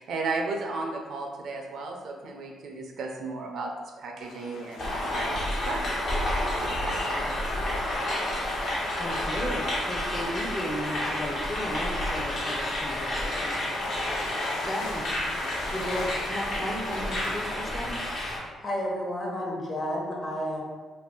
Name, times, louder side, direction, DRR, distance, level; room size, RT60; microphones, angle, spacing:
voice 1, 0.0-5.9 6.2-7.0, right 3 dB, 65° right, 2 dB, 0.4 m, -35 dB
sound 1, 4.2-17.5, left 2 dB, 90° left, 0.4 m, -41 dB
sound 2, 4.8-18.4, left 1 dB, 60° left, 1.0 m, -30 dB
voice 2, 9.0-15.1 15.7-18.1, equal, 15° left, 0 dB, 0.5 m, -35 dB
voice 3, 18.6-20.6, equal, 35° left, -3 dB, 0.9 m, -31 dB
2.6 x 2.6 x 3.4 m, 1.5 s
cardioid pair, 90°, 0 cm